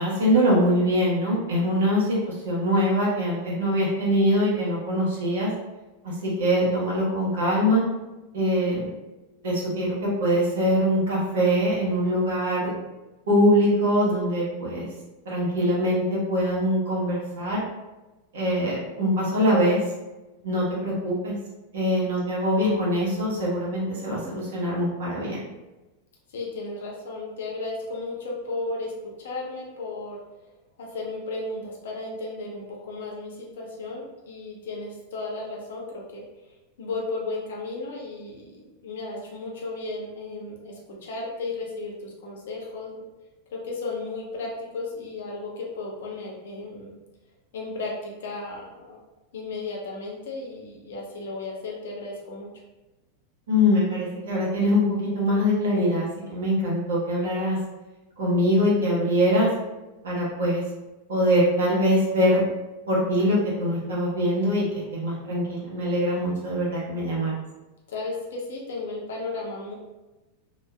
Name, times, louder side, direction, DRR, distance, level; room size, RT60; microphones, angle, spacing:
voice 1, 0.0-5.5 6.0-7.8 8.3-8.9 9.4-12.7 13.3-14.9 15.2-17.6 18.3-19.8 20.4-21.3 21.7-25.4 53.5-57.6 58.2-59.5 60.0-60.6 61.1-62.4 62.9-67.3, equal, 60° right, -5 dB, 0.9 m, -23 dB
voice 2, 26.3-30.2 30.8-43.0 43.5-46.9 47.5-49.0 49.3-52.5 67.9-69.7, left 3 dB, 60° left, -2 dB, 0.6 m, -34 dB
2.8 x 2.3 x 2.2 m, 1.1 s
figure-of-eight pair, 90°, 0 cm